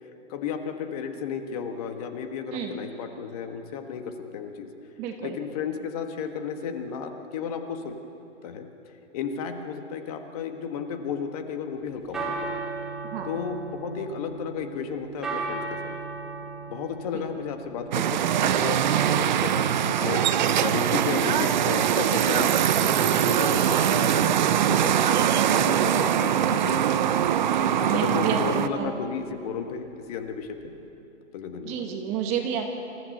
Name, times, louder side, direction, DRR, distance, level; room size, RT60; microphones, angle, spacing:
voice 1, 0.3-4.7 5.2-7.9 8.4-8.7 9.1-12.6 13.2-16.0 16.7-26.9 27.8-30.7 31.3-31.9, left 6 dB, 30° left, 6 dB, 1.6 m, -33 dB
voice 2, 5.0-5.4 13.1-13.3 27.5-28.4 28.8-28.9 31.6-32.7, right 8 dB, 15° right, 4 dB, 1.0 m, -30 dB
sound 1, 11.8-30.8, right 3 dB, ahead, 0.5 m, -39 dB
sound 2, 17.9-28.7, right 9 dB, 40° right, 0.7 m, -22 dB
26.5 x 15.0 x 7.9 m, 2.8 s
hypercardioid pair, 160°, 37 cm